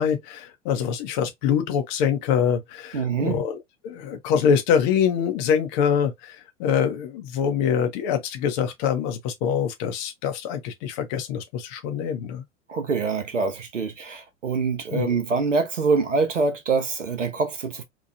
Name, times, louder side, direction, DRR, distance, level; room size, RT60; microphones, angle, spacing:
voice 1, 0.0-3.6 3.8-12.4 14.9-15.1, left 7 dB, 40° left, 0.6 m, -24 dB
voice 2, 2.9-3.4 12.7-17.8, right 4 dB, 85° right, 0.6 m, -25 dB
2.9 x 2.2 x 2.5 m
figure-of-eight pair, 90°, 36 cm